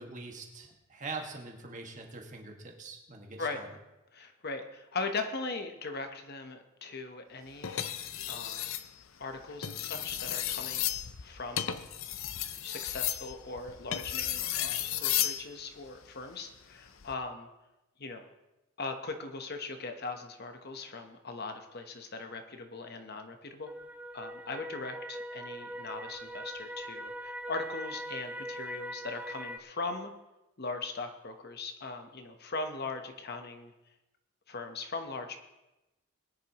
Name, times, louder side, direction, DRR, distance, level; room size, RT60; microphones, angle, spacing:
voice 1, 0.0-3.7, right 3 dB, 35° right, 1 dB, 1.8 m, -43 dB
voice 2, 4.1-7.8 8.3-8.7 9.2-10.9 11.2-11.8 12.6-17.5 18.0-18.3 18.8-23.7 24.1-30.1 30.6-33.7 34.5-35.4, left 3 dB, 45° left, 6 dB, 1.1 m, -39 dB
sound 1, 7.6-8.9 9.5-15.4 16.9-17.1, left 11 dB, 65° left, 0.7 m, -33 dB
sound 2, 23.7-29.6, equal, 5° right, 0.5 m, -41 dB
20.5 x 10.5 x 3.0 m, 0.98 s
head